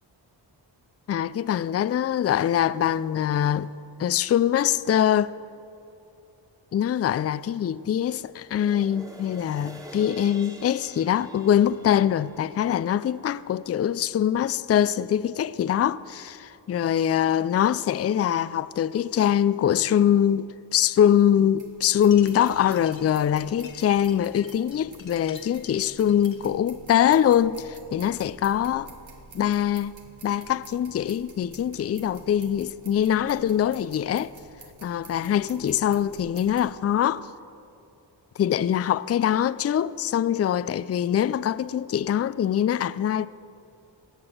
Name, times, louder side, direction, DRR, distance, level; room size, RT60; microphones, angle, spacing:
voice 1, 1.1-3.7 4.0-5.3 6.7-28.9 29.3-29.9 30.2-34.3 34.8-37.3 38.4-43.3, left 10 dB, 35° left, 0.4 m, -23 dB
sound 1, 8.4-15.0 15.5-15.6, right 1 dB, 10° right, 1.7 m, -47 dB
sound 2, 21.6-36.7, right 3 dB, 80° right, 1.7 m, -50 dB
sound 3, 21.9-26.5, left 7 dB, 80° left, 1.0 m, -48 dB
17.0 x 6.1 x 8.9 m
cardioid pair, 50°, 45 cm